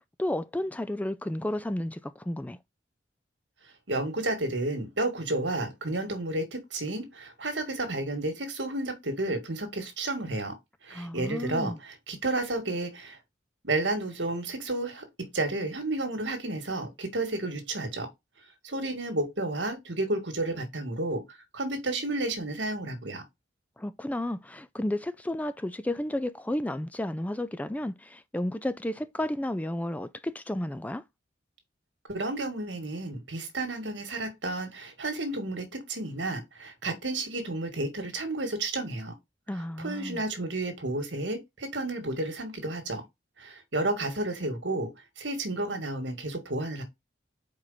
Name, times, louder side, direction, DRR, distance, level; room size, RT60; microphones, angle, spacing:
voice 1, 0.2-2.6 10.9-11.8 23.8-31.0 39.5-40.2, left 1 dB, 10° left, 0.3 m, -32 dB
voice 2, 3.9-10.6 10.8-13.2 13.6-15.1 15.3-18.1 18.6-21.2 21.5-23.2 32.1-39.1 39.5-43.0 43.4-44.9 45.2-46.8, right 2 dB, 70° right, 2.0 m, -31 dB
4.9 x 4.6 x 5.5 m
head